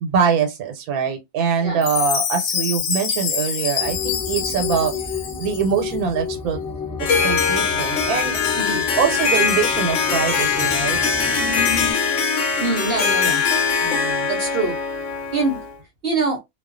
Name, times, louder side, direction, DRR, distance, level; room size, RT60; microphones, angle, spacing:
voice 1, 0.0-4.9 5.4-6.6 7.2-8.4 9.0-11.0 13.8-14.3, right 6 dB, 90° right, 1.1 m, -23 dB
Chime, 1.8-5.8, left 8 dB, 85° left, 1.1 m, -26 dB
sound 1, 3.8-11.9, left 6 dB, 20° left, 0.6 m, -31 dB
Harp, 7.0-15.7, left 5 dB, 65° left, 0.8 m, -21 dB
voice 2, 12.6-13.4 14.3-14.8 15.3-15.6 16.0-16.4, right 3 dB, 60° right, 0.6 m, -23 dB
2.3 x 2.2 x 2.4 m
omnidirectional pair, 1.5 m